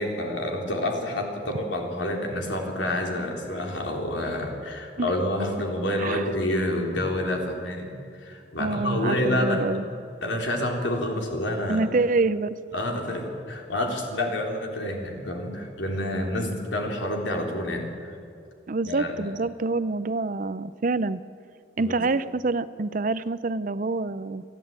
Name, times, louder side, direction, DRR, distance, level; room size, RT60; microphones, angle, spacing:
voice 1, 0.0-9.8 10.2-11.9 12.7-18.1 18.8-19.3 21.8-22.1, left 1 dB, 75° left, 1 dB, 3.7 m, -28 dB
voice 2, 6.0-6.3 8.6-9.8 11.7-12.6 18.7-21.2 21.8-24.4, right 3 dB, 45° right, 15 dB, 0.5 m, -26 dB
28.5 x 11.0 x 9.0 m, 2.4 s
head